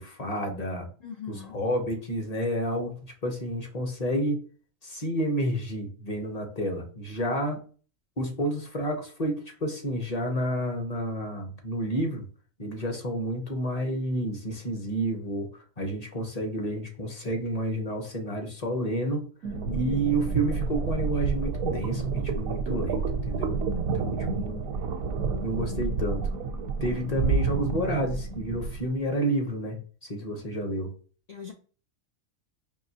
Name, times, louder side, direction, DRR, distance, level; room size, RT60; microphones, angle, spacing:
voice 1, 0.0-0.9 1.3-4.4 4.8-7.6 8.2-12.3 12.6-19.3 19.7-23.6 23.9-24.6 25.4-26.3 26.8-29.8 30.1-30.9, right 1 dB, 35° left, 3 dB, 0.7 m, -30 dB
voice 2, 1.0-1.6 7.2-7.4 19.6-20.1 31.3-31.5, left 7 dB, 90° left, 2 dB, 0.3 m, -40 dB
sound 1, 19.4-28.9, right 5 dB, 85° right, 1.0 m, -29 dB
4.7 x 2.8 x 2.7 m, 0.40 s
omnidirectional pair, 1.4 m